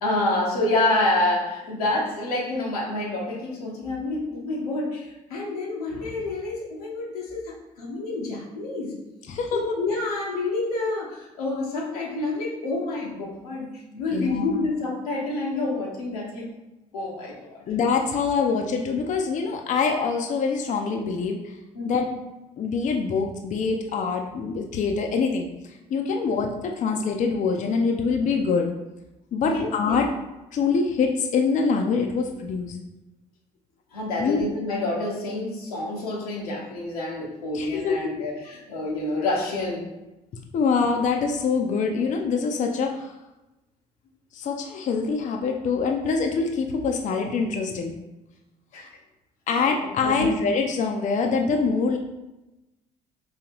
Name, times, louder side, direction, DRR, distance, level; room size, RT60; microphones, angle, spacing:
voice 1, 0.0-9.0 9.5-13.7 13.9-16.5 16.9-17.6 21.7-22.1 29.4-30.0 33.9-39.8 48.7-48.9 49.5-50.3, left 2 dB, 90° left, -3 dB, 0.9 m, -28 dB
voice 2, 9.3-9.6 14.1-14.7 17.7-21.4 21.8-22.1 22.6-25.4 25.9-28.7 29.3-30.1 30.5-32.8 34.2-34.4 37.5-38.0 40.5-43.1 44.3-47.9 49.5-52.0, left 5 dB, 45° left, 3 dB, 0.5 m, -24 dB
3.8 x 2.8 x 3.0 m, 0.98 s
hypercardioid pair, 60°, 19 cm